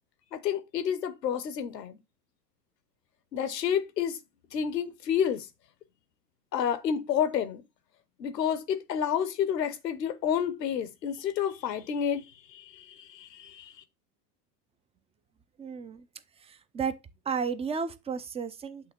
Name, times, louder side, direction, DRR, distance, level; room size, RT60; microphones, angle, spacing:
voice 1, 0.3-2.0 3.3-4.2 4.5-5.5 6.5-7.6 8.2-13.7, left 8 dB, 90° left, 0.9 m, -30 dB
voice 2, 15.6-16.1 16.4-17.0 17.2-18.9, right 6 dB, 15° right, 0.4 m, -33 dB
7.9 x 2.8 x 4.2 m
hypercardioid pair, 85°, 48 cm